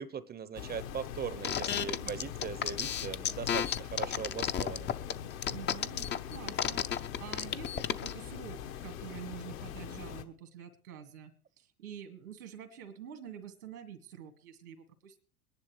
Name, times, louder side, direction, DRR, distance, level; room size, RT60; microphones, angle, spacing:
voice 1, 0.0-4.9, right 7 dB, 20° right, 15 dB, 0.8 m, -40 dB
sound 1, 0.5-10.2, left 9 dB, 65° left, 1.4 m, -43 dB
sound 2, 1.4-8.1, left 9 dB, 25° left, 0.6 m, -32 dB
voice 2, 1.7-2.3 5.5-11.3 11.6-15.2, right 9 dB, 80° right, 7 dB, 2.1 m, -47 dB
22.5 x 10.5 x 3.2 m, 0.36 s
hypercardioid pair, 80°, 44 cm